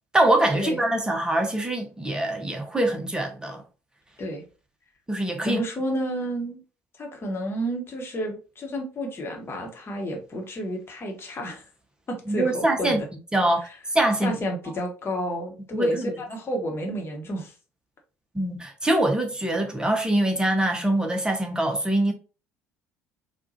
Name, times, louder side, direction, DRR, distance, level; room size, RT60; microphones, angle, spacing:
voice 1, 0.1-3.6 5.1-5.6 12.3-13.0 13.3-13.6 13.9-14.4 15.7-16.1 18.3-22.1, right 1 dB, 10° right, 0.9 m, -23 dB
voice 2, 5.4-6.6 7.0-11.6 12.1-13.0 14.2-17.5, equal, 30° left, 1.2 m, -31 dB
4.6 x 2.4 x 2.7 m
figure-of-eight pair, 55°, 8 cm